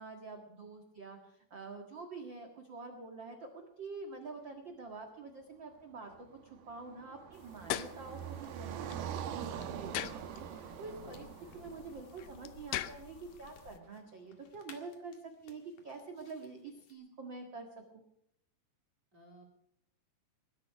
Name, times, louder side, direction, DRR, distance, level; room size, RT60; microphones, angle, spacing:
voice 1, 0.0-6.1 6.4-11.3 11.5-15.1 15.4-17.7 17.9-18.0, right 4 dB, 50° right, 3 dB, 1.4 m, -47 dB
Car passing by, 6.0-13.2, right 9 dB, 75° right, 2.9 m, -44 dB
sound 1, 7.3-13.8, left 13 dB, 85° left, 1.9 m, -44 dB
sound 2, 9.8-16.9, left 5 dB, 55° left, 3.1 m, -63 dB
voice 2, 11.3-11.8 19.1-19.4, right 1 dB, 25° right, 2 dB, 3.7 m, -59 dB
20.5 x 12.0 x 5.9 m, 0.74 s
omnidirectional pair, 4.9 m